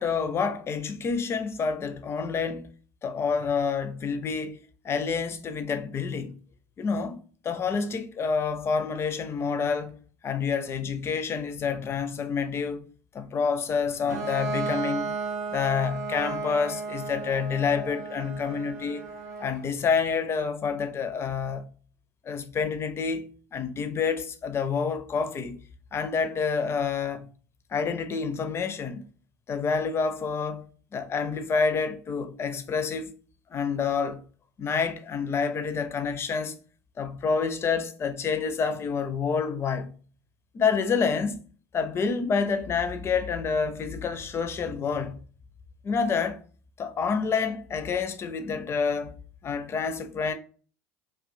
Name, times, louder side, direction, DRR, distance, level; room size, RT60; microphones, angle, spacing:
voice 1, 0.0-2.7 3.0-4.6 4.8-6.4 6.8-7.2 7.4-10.0 10.2-12.9 13.1-15.2 15.5-19.1 19.4-21.7 22.2-25.6 25.9-27.3 27.7-29.0 29.5-30.7 30.9-33.1 33.5-34.2 34.6-36.6 37.0-39.9 40.5-41.4 41.7-45.2 45.8-46.4 46.8-49.2 49.4-50.3, left 5 dB, 30° left, 0.4 m, -28 dB
Bowed string instrument, 14.1-19.7, right 4 dB, 90° right, 0.6 m, -34 dB
2.4 x 2.2 x 2.4 m
hypercardioid pair, 70°, 8 cm